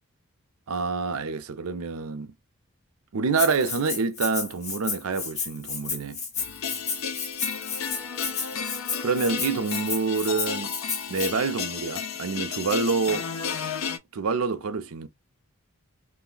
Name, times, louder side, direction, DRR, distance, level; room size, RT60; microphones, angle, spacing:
voice 1, 0.7-2.3 3.1-6.2 9.0-10.8 11.1-13.3 14.1-15.1, right 4 dB, 75° right, 0.5 m, -27 dB
Rattle (instrument), 3.4-11.3, left 5 dB, 30° left, 0.8 m, -32 dB
sound 1, 6.4-14.0, left 6 dB, 70° left, 0.4 m, -33 dB
2.5 x 2.1 x 3.7 m
head